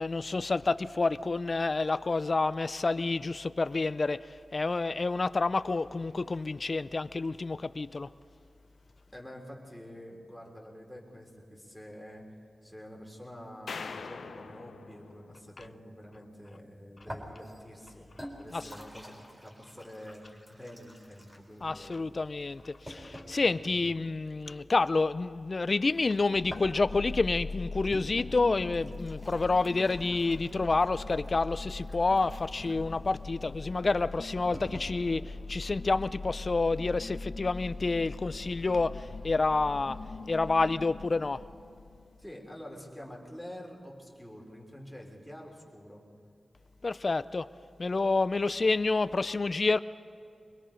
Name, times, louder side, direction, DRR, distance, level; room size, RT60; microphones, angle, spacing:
voice 1, 0.0-4.3 4.5-8.1 18.5-18.6 21.6-40.0 40.3-41.4 46.8-47.5 47.8-49.8, left 3 dB, 45° left, 14 dB, 0.4 m, -29 dB
voice 2, 9.1-12.2 12.6-18.1 18.4-22.1 23.4-23.9 42.2-46.0, equal, 5° right, -1 dB, 3.6 m, -47 dB
sound 1, 13.7-16.0, left 4 dB, 85° left, 0.9 m, -43 dB
sound 2, 17.1-23.5 26.2-34.9, equal, 20° right, 4.1 m, -48 dB
sound 3, 26.3-42.2, left 3 dB, 65° left, 1.3 m, -41 dB
24.5 x 21.5 x 5.1 m, 2.5 s
wide cardioid pair, 90°, 0 cm